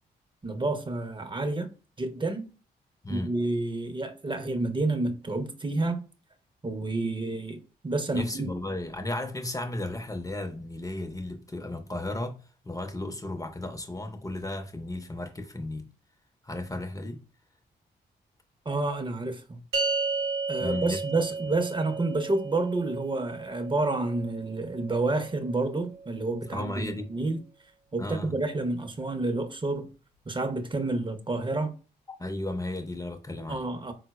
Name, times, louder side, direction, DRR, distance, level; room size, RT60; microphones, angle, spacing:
voice 1, 0.4-1.7 2.0-2.5 3.1-6.0 6.6-8.5 18.7-19.6 20.5-27.4 27.9-29.9 30.3-31.7 33.5-33.9, right 2 dB, 25° right, 0.6 m, -29 dB
voice 2, 8.1-12.4 12.6-15.9 16.4-17.2 20.6-21.0 21.5-21.6 26.5-27.1 28.0-28.3 32.2-33.7, left 1 dB, 15° left, 0.5 m, -34 dB
sound 1, 19.7-26.3, right 3 dB, 85° right, 0.6 m, -34 dB
3.9 x 2.0 x 2.2 m
supercardioid pair, 50°, 20 cm